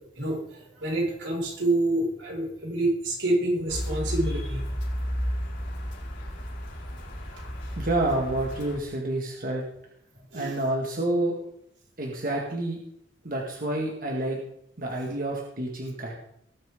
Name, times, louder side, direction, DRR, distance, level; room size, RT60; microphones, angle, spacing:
voice 1, 0.1-4.7 7.3-7.5 10.3-10.7, right 1 dB, 90° right, -3 dB, 5.9 m, -28 dB
sound 1, 3.7-8.8, equal, 75° left, 4.5 m, -32 dB
voice 2, 7.8-9.6 10.3-11.3 12.0-12.8 13.2-14.4 14.8-16.1, right 1 dB, 50° right, -1 dB, 2.0 m, -28 dB
19.0 x 8.8 x 3.8 m, 0.72 s
head